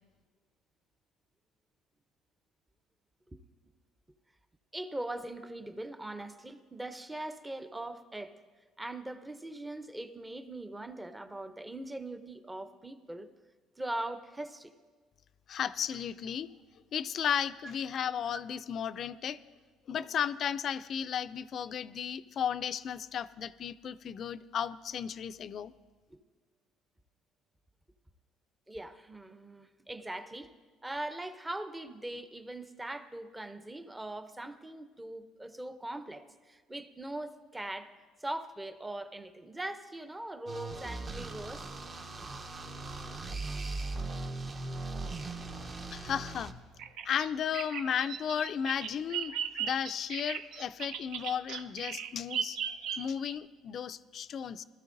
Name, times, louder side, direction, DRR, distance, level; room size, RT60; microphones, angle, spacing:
voice 1, 4.7-8.3 8.8-13.3 13.8-14.7 26.1-26.2 28.7-30.5 30.8-37.9 38.2-41.7, right 1 dB, 10° right, 10 dB, 0.6 m, -41 dB
voice 2, 15.5-16.5 16.9-19.4 19.9-25.7 45.9-46.5 47.0-49.3 49.6-52.6 52.9-54.6, left 8 dB, 50° left, 14 dB, 0.3 m, -34 dB
sound 1, 40.5-46.5, right 3 dB, 35° right, 0.8 m, -39 dB
Bird vocalization bird call bird song, 46.8-53.4, right 8 dB, 70° right, 0.5 m, -37 dB
20.0 x 13.0 x 2.6 m, 1.5 s
cardioid pair, 105°, 0 cm